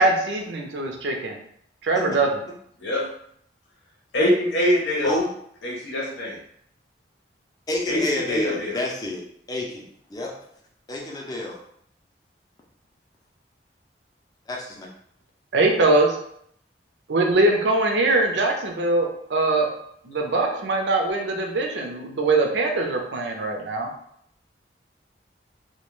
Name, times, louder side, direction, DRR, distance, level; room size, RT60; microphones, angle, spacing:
voice 1, 0.0-1.4 1.8-2.3 15.5-16.2 17.1-19.7 20.0-23.9, right 2 dB, 85° right, 2 dB, 0.5 m, -22 dB
voice 2, 4.1-5.1 5.6-6.3 7.9-8.0 8.3-8.7, left 1 dB, 85° left, -3 dB, 0.8 m, -23 dB
voice 3, 7.7-9.2 9.5-10.3 10.9-11.6 14.5-14.9, left 1 dB, 20° left, -1 dB, 0.4 m, -29 dB
2.3 x 2.1 x 3.0 m, 0.69 s
head